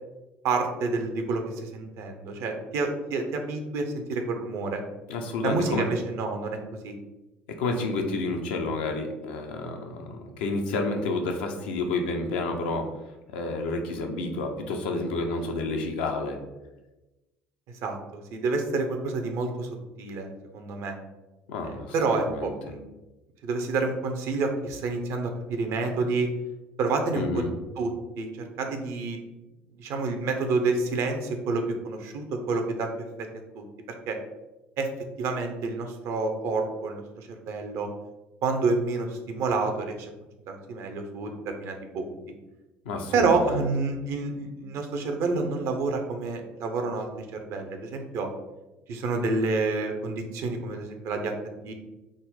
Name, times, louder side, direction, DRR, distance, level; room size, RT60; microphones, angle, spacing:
voice 1, 0.4-4.8 5.4-6.6 6.8-7.0 17.8-19.7 20.0-20.3 20.5-21.0 21.6-22.9 23.4-26.3 26.8-27.4 27.8-27.9 28.2-29.2 29.8-32.9 33.2-33.3 33.6-33.7 34.1-34.2 34.8-34.9 35.2-37.9 38.4-40.1 40.5-42.0 43.1-48.3 48.9-51.7, right 3 dB, 60° right, 5 dB, 0.6 m, -28 dB
voice 2, 5.1-5.9 7.6-12.9 13.3-16.4 21.5-21.9 22.3-22.5 27.1-27.5 42.9-43.6, left 3 dB, 75° left, 3 dB, 0.5 m, -30 dB
3.7 x 2.0 x 3.9 m, 1.1 s
hypercardioid pair, 60°, 6 cm